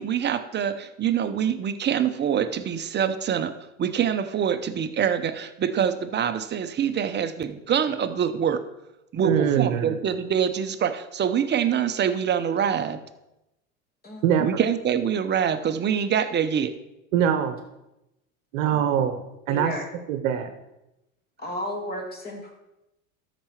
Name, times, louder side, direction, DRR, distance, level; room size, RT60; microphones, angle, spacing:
voice 1, 0.0-8.6 9.1-13.0 14.4-16.7, right 8 dB, 25° right, 10 dB, 0.7 m, -25 dB
voice 2, 9.2-10.0 14.2-14.5 17.1-17.5 18.5-19.1 19.5-19.7 20.1-20.5, right 9 dB, 65° right, 8 dB, 0.9 m, -23 dB
voice 3, 14.0-14.6 18.6-18.8 19.5-19.8 21.4-22.5, left 1 dB, 20° left, 2 dB, 2.5 m, -34 dB
13.0 x 5.0 x 4.5 m, 0.92 s
hypercardioid pair, 85°, 42 cm